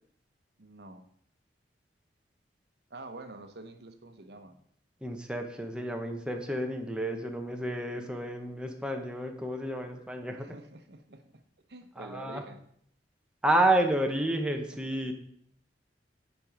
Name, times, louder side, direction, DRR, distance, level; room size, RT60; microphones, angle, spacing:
voice 1, 0.6-1.1 2.9-4.6 10.4-11.4 11.7-12.7 14.7-15.0, right 2 dB, 65° right, 7 dB, 1.0 m, -47 dB
voice 2, 5.0-10.5 12.0-12.4 13.4-15.1, right 1 dB, 5° right, 3 dB, 0.9 m, -30 dB
8.9 x 5.3 x 4.9 m, 0.67 s
head